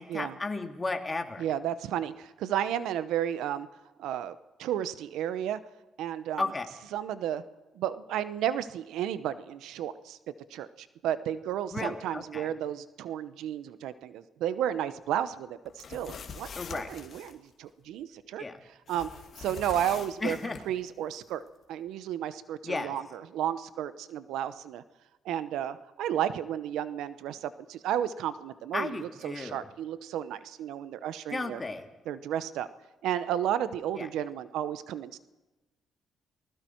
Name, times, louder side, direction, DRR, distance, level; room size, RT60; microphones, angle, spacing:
voice 1, 0.0-1.4 6.4-6.6 11.7-12.5 16.6-16.9 18.4-18.5 20.2-20.6 22.6-22.9 28.7-29.6 31.3-31.9 34.0-34.1, left 3 dB, 25° left, 5 dB, 2.6 m, -34 dB
voice 2, 1.4-3.7 4.0-5.6 6.0-6.4 6.9-7.4 7.7-10.2 10.5-18.4 18.9-19.1 19.4-20.4 20.7-21.4 21.7-24.8 25.2-31.6 32.1-32.7 33.0-35.2, right 10 dB, 85° right, 14 dB, 0.9 m, -33 dB
sound 1, 15.7-17.3 18.9-20.6, left 6 dB, 55° left, 2.5 m, -44 dB
29.0 x 20.0 x 4.6 m, 1.1 s
cardioid pair, 90°, 0 cm